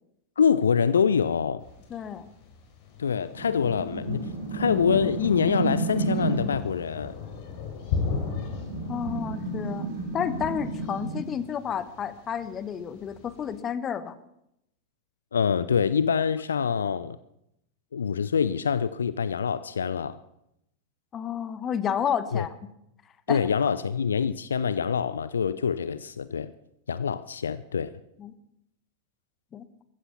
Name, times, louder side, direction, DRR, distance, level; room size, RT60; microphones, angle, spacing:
voice 1, 0.4-1.6 3.0-7.1 15.3-17.2 17.9-20.2 22.3-22.4 23.3-26.5 26.9-27.9, left 6 dB, 70° left, 15 dB, 0.5 m, -25 dB
Thunder, 1.6-13.6, left 5 dB, 45° left, 4.3 m, -37 dB
voice 2, 1.9-2.2 8.9-9.9 10.1-14.2 21.1-22.5 23.3-23.4 28.2-28.3 29.5-29.7, left 8 dB, 25° left, 14 dB, 1.2 m, -31 dB
sound 1, 3.4-6.6 8.4-11.2, right 3 dB, 65° right, 3.1 m, -31 dB
15.0 x 14.5 x 5.9 m, 0.80 s
figure-of-eight pair, 90°, 0 cm